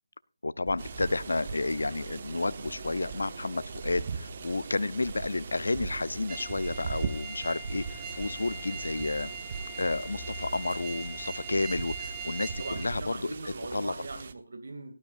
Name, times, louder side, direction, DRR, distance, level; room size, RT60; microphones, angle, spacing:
voice 1, 0.4-9.3 9.8-13.9, left 2 dB, 70° left, 18 dB, 0.5 m, -31 dB
sound 1, 0.7-12.9, left 3 dB, 35° left, 2.5 m, -49 dB
sound 2, 0.8-14.3, right 5 dB, 40° right, 1.0 m, -40 dB
sound 3, 6.3-12.9, right 4 dB, 10° right, 2.3 m, -41 dB
voice 2, 12.6-14.9, right 3 dB, 60° right, 6 dB, 2.3 m, -41 dB
17.5 x 12.0 x 2.5 m, 0.33 s
figure-of-eight pair, 160°, 0 cm